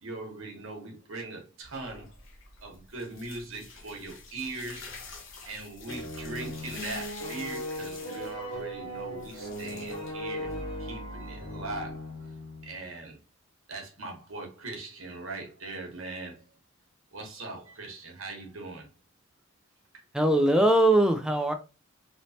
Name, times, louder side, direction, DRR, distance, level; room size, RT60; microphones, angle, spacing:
voice 1, 0.0-2.1 2.6-4.9 5.5-10.5 10.8-12.3 12.6-13.2 13.7-16.4 17.1-18.9, right 2 dB, 70° right, 1.2 m, -40 dB
sound 1, 1.6-10.8, left 4 dB, 65° left, 0.9 m, -47 dB
sound 2, 5.8-12.8, equal, 80° left, 1.5 m, -38 dB
voice 2, 20.1-21.5, right 1 dB, 5° right, 0.4 m, -21 dB
3.1 x 3.0 x 2.7 m
head